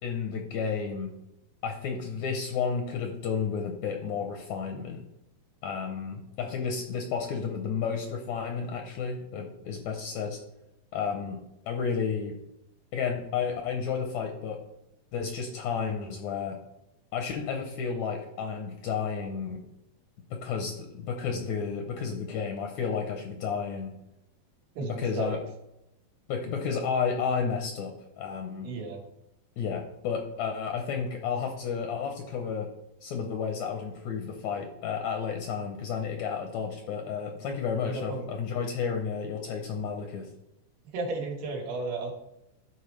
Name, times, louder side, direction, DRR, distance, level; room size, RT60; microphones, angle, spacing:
voice 1, 0.0-1.1 1.6-5.0 5.6-10.4 10.9-11.4 11.7-12.4 12.9-14.6 15.1-16.6 17.1-19.6 20.3-23.9 24.8-25.4 26.3-28.7 29.6-32.7 33.0-40.3, left 6 dB, 85° left, 3 dB, 1.6 m, -32 dB
voice 2, 24.8-25.4 28.6-29.0 37.9-38.3 40.9-42.1, right 3 dB, 85° right, -1 dB, 3.5 m, -33 dB
13.0 x 4.5 x 3.2 m, 0.86 s
omnidirectional pair, 4.3 m